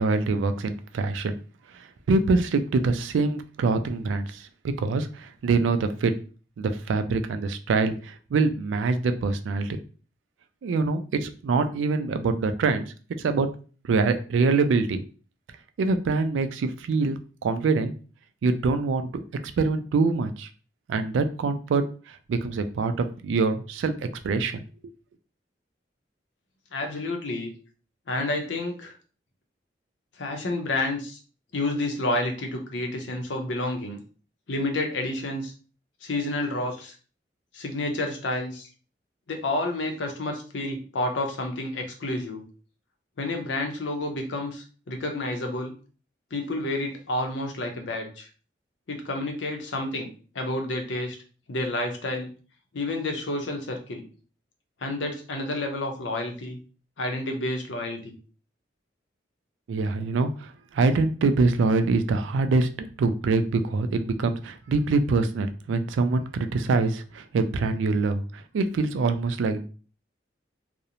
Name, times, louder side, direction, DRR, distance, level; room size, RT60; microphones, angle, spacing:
voice 1, 0.0-1.3 1.7-4.5 4.8-6.1 6.6-9.8 10.6-12.9 13.2-13.5 13.8-15.0 15.8-17.9 18.4-19.1 19.6-20.5 20.9-23.9 24.2-24.6 59.7-69.6, right 3 dB, 90° right, 9 dB, 0.3 m, -24 dB
voice 2, 26.7-27.5 28.1-28.9 30.2-31.2 31.5-34.0 34.5-35.5 36.0-36.9 37.5-38.7 39.3-42.4 43.2-45.7 46.3-48.3 48.9-51.2 51.5-52.3 52.7-54.1 54.8-56.6 57.0-58.2, left 2 dB, 80° left, 3 dB, 0.6 m, -30 dB
2.5 x 2.0 x 2.8 m, 0.38 s
head